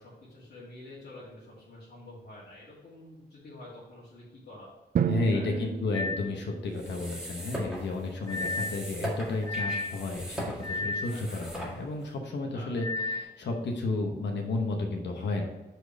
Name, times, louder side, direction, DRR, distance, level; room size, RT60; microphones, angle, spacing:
voice 1, 0.0-4.7 5.1-5.6 11.1-11.5 12.5-12.9 15.1-15.4, left 1 dB, 65° left, -8 dB, 2.2 m, -48 dB
Drum, 5.0-6.9, right 7 dB, 55° right, 0.4 m, -31 dB
voice 2, 5.1-15.4, left 2 dB, 90° left, 3 dB, 0.9 m, -32 dB
sound 1, 5.9-6.3 8.3-8.8 9.4-10.0 10.6-11.2 12.8-13.2, left 3 dB, 20° left, 1.1 m, -32 dB
sound 2, 6.7-12.1, right 1 dB, 5° right, 1.9 m, -40 dB
5.0 x 4.5 x 6.1 m, 1.1 s
cardioid pair, 90°, 18 cm